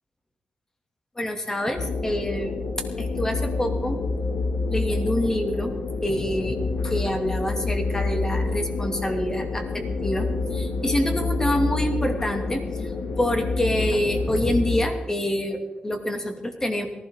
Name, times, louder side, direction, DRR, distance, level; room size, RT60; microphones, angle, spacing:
voice 1, 1.2-2.6 3.0-4.0 4.7-5.8 6.0-16.9, left 1 dB, 20° left, 4 dB, 2.3 m, -27 dB
sound 1, 1.8-14.9, left 3 dB, 85° left, 2.1 m, -28 dB
19.0 x 15.0 x 3.7 m, 1.1 s
wide cardioid pair, 110°, 3 cm